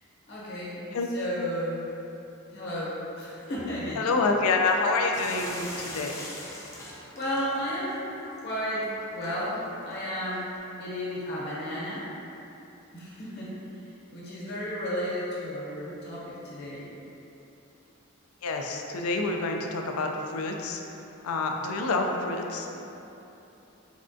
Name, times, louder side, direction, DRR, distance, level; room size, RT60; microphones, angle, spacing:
voice 1, 0.3-0.8 1.1-1.8 2.5-4.1 7.1-8.1 8.4-10.5 10.8-12.1 12.9-13.5 14.1-16.9, equal, 50° left, -8 dB, 0.9 m, -33 dB
voice 2, 4.0-6.2 18.4-20.8 21.2-22.7, left 3 dB, 85° left, 2 dB, 0.4 m, -27 dB
sound 1, 5.1-10.6, left 1 dB, 15° left, 0.3 m, -43 dB
3.5 x 3.2 x 2.6 m, 2.9 s
head